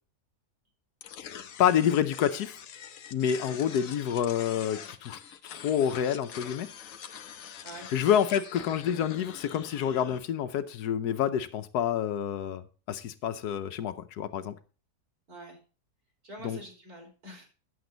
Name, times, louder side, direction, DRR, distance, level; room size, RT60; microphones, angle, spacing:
sound 1, 1.0-10.2, left 8 dB, 60° left, 1.1 m, -44 dB
voice 1, 1.6-2.5 3.1-5.2 5.5-6.7 7.9-14.5 16.4-16.6, left 9 dB, 75° left, 9 dB, 1.3 m, -28 dB
voice 2, 3.4-3.8 7.6-7.9 15.3-15.6 16.2-17.5, right 1 dB, 65° right, 0 dB, 4.2 m, -46 dB
10.5 x 8.0 x 3.9 m, 0.35 s
omnidirectional pair, 1.7 m